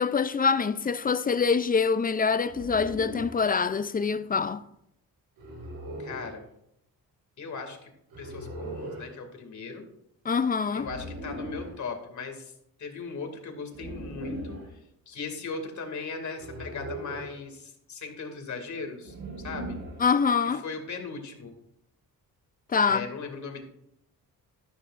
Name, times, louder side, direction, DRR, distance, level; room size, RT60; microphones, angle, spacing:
voice 1, 0.0-4.6 10.3-10.9 20.0-20.6 22.7-23.1, left 5 dB, 25° left, 0.3 m, -25 dB
sound 1, 2.5-3.4 5.4-6.4 8.1-9.1 10.8-11.8 13.7-14.7 16.4-17.4 19.0-20.1, right 1 dB, 75° right, 4.8 m, -39 dB
voice 2, 6.0-6.5 7.4-7.9 8.2-9.9 10.7-12.5 12.8-14.8 15.1-19.8 20.4-21.5 22.8-23.6, left 4 dB, 50° left, 2.3 m, -38 dB
13.5 x 13.5 x 2.5 m
wide cardioid pair, 165°, 36 cm